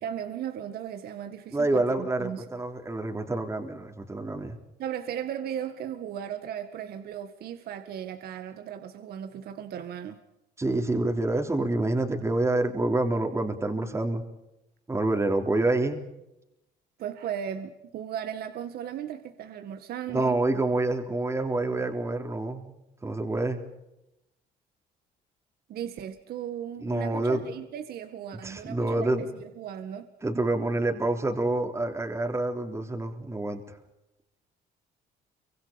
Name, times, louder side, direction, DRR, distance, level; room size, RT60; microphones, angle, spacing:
voice 1, 0.0-2.5 4.8-10.2 17.0-20.4 25.7-30.1, right 9 dB, 65° right, 1.9 m, -36 dB
voice 2, 1.5-4.6 10.6-14.2 14.9-16.0 20.1-22.7 23.0-23.6 26.8-27.4 28.4-29.3 30.2-33.6, right 2 dB, 15° right, 3.5 m, -27 dB
29.5 x 25.0 x 5.3 m
cardioid pair, 110°, 17 cm